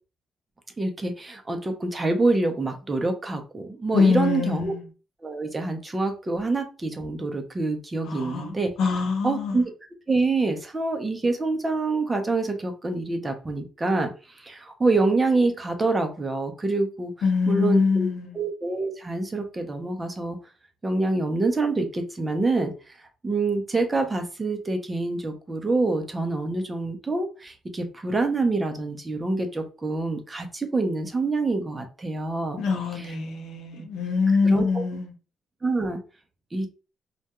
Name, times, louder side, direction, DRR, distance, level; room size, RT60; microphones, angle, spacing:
voice 1, 0.8-4.7 5.2-8.7 9.2-9.6 10.1-17.1 17.5-18.1 18.3-20.4 20.8-22.9 23.2-32.6 33.0-33.1 33.7-33.8 34.4-34.8 35.6-36.0 36.5-36.7, right 3 dB, 20° right, 0.5 m, -26 dB
voice 2, 3.9-4.8 8.0-9.6 17.2-18.4 32.6-35.1, left 4 dB, 80° left, 0.7 m, -24 dB
2.2 x 2.2 x 2.8 m
cardioid pair, 90°, 0 cm